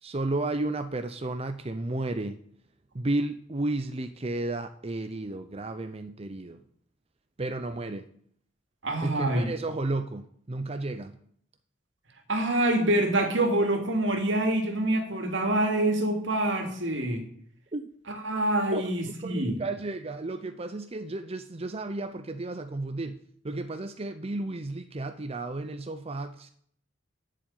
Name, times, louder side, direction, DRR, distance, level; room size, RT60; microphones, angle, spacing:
voice 1, 0.0-2.4 2.9-6.6 7.4-8.1 9.0-11.2 17.7-17.9 18.7-18.9 19.2-23.2 23.4-26.5, right 2 dB, 30° right, 0.7 m, -33 dB
voice 2, 8.8-9.5 12.3-17.2 18.1-19.6, right 1 dB, 75° right, 2.7 m, -26 dB
11.5 x 7.6 x 9.1 m
head